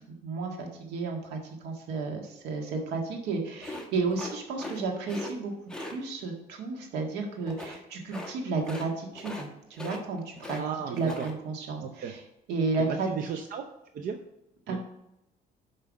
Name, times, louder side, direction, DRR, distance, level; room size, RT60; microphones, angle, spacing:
voice 1, 0.2-5.5 5.8-10.6 10.9-12.2 12.5-13.1 14.7-14.8, right 4 dB, 85° right, 2 dB, 1.7 m, -32 dB
sound 1, 3.6-4.8 5.1-5.3 5.7-5.9 7.5-7.8 8.1-8.3 8.6-8.9 9.2-9.5 9.7-10.6 10.9-11.3, left 1 dB, 5° left, 1.3 m, -39 dB
voice 2, 10.5-11.3 11.8-12.1 12.9-13.7 13.9-14.2 14.7-14.8, right 7 dB, 55° right, 5 dB, 0.7 m, -35 dB
5.7 x 5.4 x 6.3 m, 0.86 s
cardioid pair, 110°, 17 cm